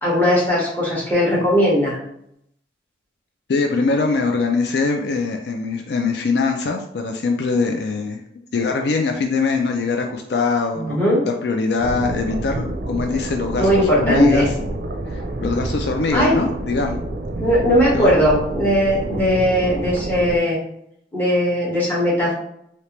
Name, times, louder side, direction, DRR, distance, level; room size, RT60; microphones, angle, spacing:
voice 1, 0.0-2.0 10.7-11.2 13.6-14.5 16.1-16.3 17.4-20.6 21.1-22.3, equal, 10° left, -6 dB, 1.3 m, -18 dB
voice 2, 3.5-14.5 15.1-17.0 17.9-18.1, left 4 dB, 70° left, 4 dB, 0.4 m, -22 dB
sound 1, 11.8-20.4, right 2 dB, 60° right, 0.5 m, -28 dB
3.2 x 2.8 x 3.0 m, 0.74 s
head